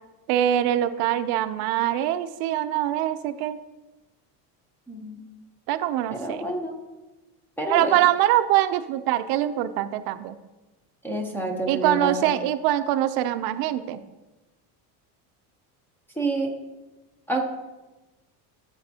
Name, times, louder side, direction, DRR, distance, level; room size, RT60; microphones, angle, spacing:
voice 1, 0.3-3.6 5.7-6.5 7.7-10.4 11.7-14.0, right 12 dB, 65° right, 11 dB, 0.5 m, -23 dB
voice 2, 4.9-5.2 6.1-6.8 7.6-7.9 11.0-12.4 16.2-16.5 17.3-17.4, right 2 dB, 5° left, 2 dB, 0.6 m, -28 dB
12.0 x 7.0 x 2.7 m, 1.1 s
cardioid pair, 175°, 40 cm